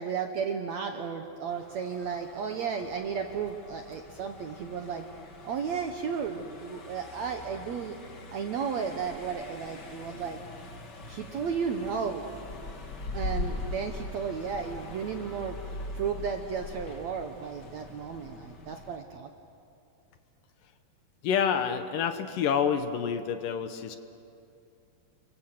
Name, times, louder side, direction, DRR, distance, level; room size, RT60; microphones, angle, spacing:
voice 1, 0.0-5.0 5.4-8.0 8.3-10.4 11.1-12.2 13.1-15.6 15.9-19.3, right 6 dB, 70° right, 5 dB, 1.8 m, -33 dB
Car passing by, 1.5-19.0, left 2 dB, 35° left, 1.9 m, -42 dB
voice 2, 21.2-24.0, left 7 dB, 70° left, 8 dB, 2.5 m, -28 dB
29.5 x 24.0 x 7.7 m, 2.5 s
omnidirectional pair, 4.4 m